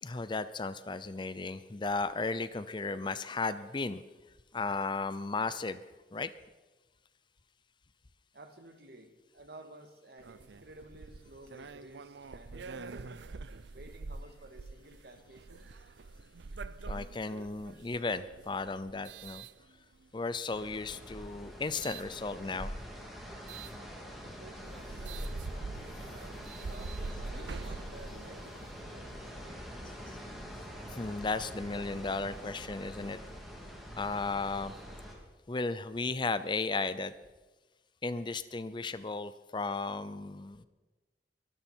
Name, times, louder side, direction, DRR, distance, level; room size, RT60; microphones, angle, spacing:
voice 1, 0.0-4.0 4.5-5.8 6.1-6.3 16.9-19.4 20.1-22.7 30.1-30.2 30.9-33.2 34.0-34.7 35.5-37.1 38.0-40.6, left 3 dB, 25° left, 14 dB, 0.5 m, -35 dB
voice 2, 8.3-13.2 13.7-15.7 24.2-29.7, right 2 dB, 60° right, 6 dB, 1.9 m, -53 dB
sound 1, 10.2-20.2 20.9-22.1 23.5-23.8 24.3-24.4 24.7-28.8, right 3 dB, 80° right, 0.6 m, -44 dB
sound 2, 20.5-35.1, equal, ahead, 2.9 m, -45 dB
23.0 x 12.5 x 4.5 m, 1.2 s
head